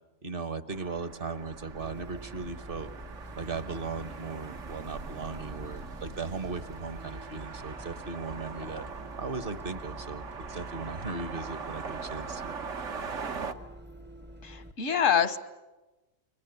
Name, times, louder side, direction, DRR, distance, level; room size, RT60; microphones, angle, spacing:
voice 1, 0.2-2.9 3.4-8.8 9.2-12.5, right 4 dB, 50° right, 11 dB, 1.3 m, -37 dB
sound 1, 0.7-13.5, right 5 dB, 70° right, 1.5 m, -41 dB
Bus, 1.8-14.7, right 1 dB, 10° right, 0.6 m, -47 dB
voice 2, 14.4-15.4, left 8 dB, 80° left, 10 dB, 1.6 m, -25 dB
29.5 x 23.5 x 8.1 m, 1.1 s
omnidirectional pair, 1.3 m